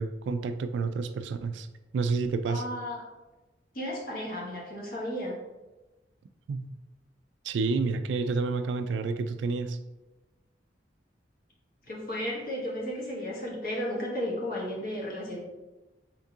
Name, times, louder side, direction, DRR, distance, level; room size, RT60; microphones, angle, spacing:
voice 1, 0.0-1.7 1.9-2.6 6.5-6.7 7.4-9.8, right 4 dB, 80° right, 10 dB, 0.3 m, -29 dB
voice 2, 2.5-3.0 3.7-5.4 11.9-15.4, equal, 50° left, -4 dB, 1.2 m, -34 dB
4.5 x 3.6 x 2.7 m, 1.1 s
head